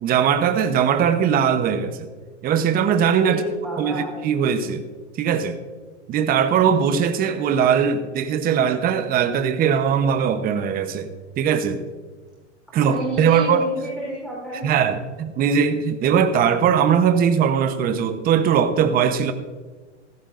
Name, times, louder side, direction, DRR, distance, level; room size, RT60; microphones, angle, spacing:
voice 1, 0.0-2.1 2.4-3.4 3.8-4.9 5.1-5.6 6.1-11.1 11.4-11.8 12.7-13.7 14.6-19.3, right 7 dB, 25° right, 9 dB, 0.9 m, -20 dB
voice 2, 3.3-4.2 6.8-6.9 12.8-15.0, equal, ahead, -5 dB, 3.8 m, -30 dB
16.0 x 15.0 x 2.5 m, 1.4 s
hypercardioid pair, 125°, 36 cm